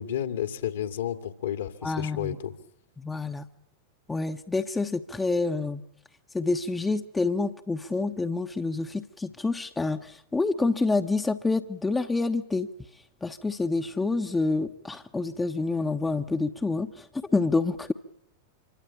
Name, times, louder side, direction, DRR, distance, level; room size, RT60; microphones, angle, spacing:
voice 1, 0.0-2.5, left 10 dB, 65° left, 8 dB, 2.5 m, -31 dB
voice 2, 1.8-2.4 3.0-3.5 4.1-5.8 6.3-12.7 13.2-17.9, left 3 dB, 10° left, 6 dB, 1.2 m, -27 dB
26.5 x 24.5 x 8.7 m, 0.78 s
figure-of-eight pair, 90°, 0 cm